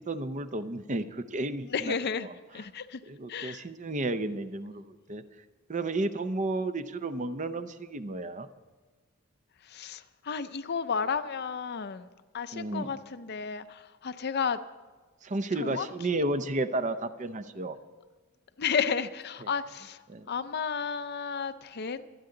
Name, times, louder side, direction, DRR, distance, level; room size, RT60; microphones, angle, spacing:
voice 1, 0.1-1.9 2.2-2.3 3.1-5.2 5.7-8.5 12.5-12.9 15.2-17.8 20.1-20.3, right 2 dB, 35° right, 11 dB, 0.6 m, -32 dB
voice 2, 1.7-2.3 2.5-3.0 3.3-3.6 9.6-12.1 12.3-14.6 15.6-15.9 16.1-16.2 18.6-20.0 20.3-22.0, left 6 dB, 50° left, 12 dB, 0.5 m, -32 dB
24.0 x 9.5 x 3.9 m, 1.3 s
head